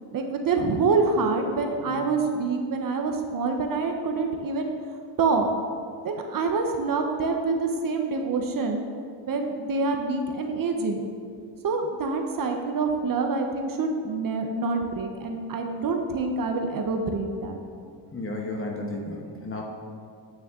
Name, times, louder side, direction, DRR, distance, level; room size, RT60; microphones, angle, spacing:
voice 1, 0.1-4.7 5.2-5.5 6.0-8.8 9.3-11.0 11.6-17.6, right 4 dB, 45° right, 4 dB, 0.8 m, -26 dB
voice 2, 18.1-19.6, left 2 dB, 30° left, 0 dB, 1.2 m, -33 dB
8.9 x 6.3 x 3.6 m, 2.3 s
cardioid pair, 110°, 45 cm